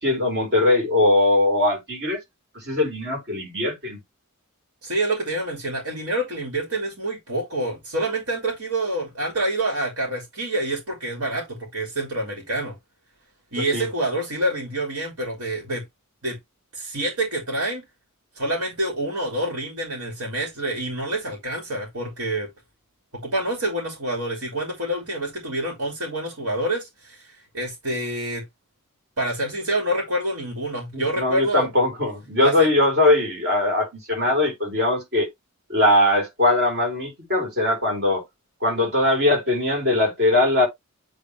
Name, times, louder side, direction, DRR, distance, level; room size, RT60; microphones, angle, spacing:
voice 1, 0.0-2.2 2.5-4.0 13.6-13.9 30.9-35.3 35.7-38.2 38.6-40.7, left 2 dB, 50° right, 4.0 m, -21 dB
voice 2, 4.8-12.8 13.5-15.8 16.2-16.4 16.7-17.8 18.3-22.5 23.1-28.4 29.2-31.7 32.4-32.7, right 1 dB, 75° right, 2.9 m, -27 dB
8.6 x 3.6 x 3.3 m
head